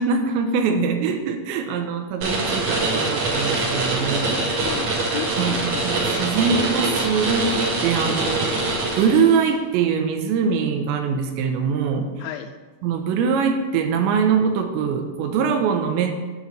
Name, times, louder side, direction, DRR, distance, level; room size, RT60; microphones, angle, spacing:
voice 1, 0.0-4.4 5.4-8.7 9.0-12.1 12.8-16.1, right 6 dB, 75° right, 5 dB, 2.9 m, -23 dB
sound 1, 2.2-9.5, right 2 dB, 50° right, 2.0 m, -24 dB
voice 2, 4.6-6.3 12.2-12.5, left 10 dB, 85° left, 6 dB, 2.9 m, -34 dB
10.0 x 4.7 x 7.9 m, 1.3 s
omnidirectional pair, 5.8 m